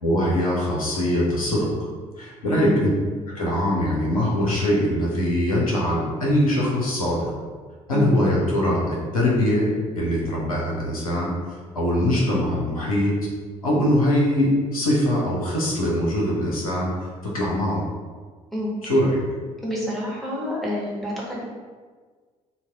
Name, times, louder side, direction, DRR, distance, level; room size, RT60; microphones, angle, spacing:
voice 1, 0.0-1.9 2.2-2.9 3.3-7.3 7.9-13.1 13.6-17.8 18.8-19.2, left 1 dB, 85° left, -4 dB, 0.7 m, -22 dB
voice 2, 2.5-2.9 7.9-8.2 18.5-18.7 19.6-21.4, left 1 dB, ahead, -6 dB, 1.3 m, -28 dB
4.1 x 2.2 x 3.4 m, 1.5 s
figure-of-eight pair, 50°, 18 cm